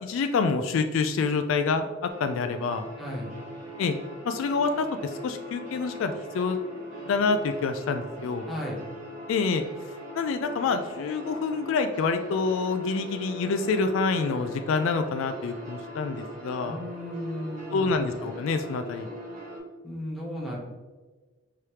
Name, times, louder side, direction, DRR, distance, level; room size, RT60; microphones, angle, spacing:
voice 1, 0.0-2.9 3.8-4.0 4.3-6.6 7.1-8.5 9.3-9.6 10.1-16.8 17.7-19.1, left 4 dB, 65° left, 7 dB, 0.3 m, -27 dB
sound 1, 2.1-19.6, equal, 35° right, 1.3 m, -41 dB
voice 2, 3.0-3.3 8.5-8.8 16.6-17.8 19.8-20.6, equal, ahead, -4 dB, 0.8 m, -35 dB
4.8 x 3.2 x 2.9 m, 1.3 s
head